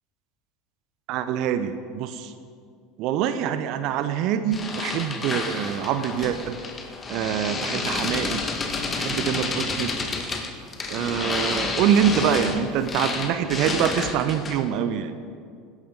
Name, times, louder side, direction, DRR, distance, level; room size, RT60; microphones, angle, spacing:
voice 1, 1.1-2.3 3.0-6.6 7.1-8.4 8.9-9.9 10.9-15.2, right 9 dB, 55° right, 10 dB, 0.9 m, -25 dB
sound 1, 4.5-14.7, left 3 dB, 25° left, 1.9 m, -30 dB
26.0 x 12.5 x 4.0 m, 2.2 s
figure-of-eight pair, 70°, 0 cm